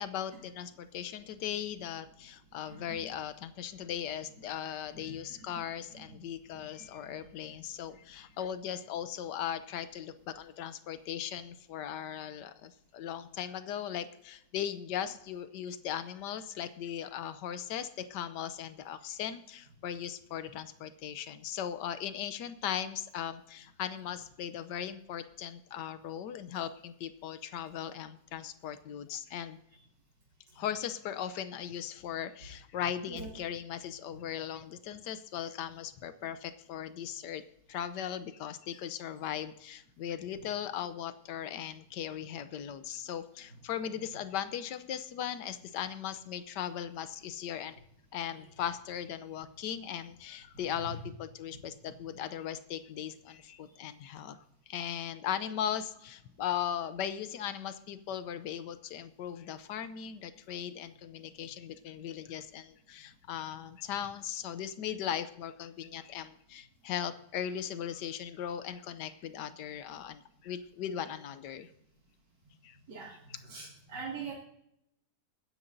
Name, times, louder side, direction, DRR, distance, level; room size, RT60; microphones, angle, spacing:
voice 1, 0.0-29.6 30.5-37.4 37.7-47.8 48.1-54.4 54.7-71.7 72.6-72.8 73.3-73.4, left 9 dB, 90° left, 12 dB, 1.3 m, -38 dB
voice 2, 73.5-74.3, right 5 dB, 85° right, -4 dB, 2.9 m, -41 dB
22.0 x 9.6 x 2.6 m, 0.75 s
omnidirectional pair, 1.8 m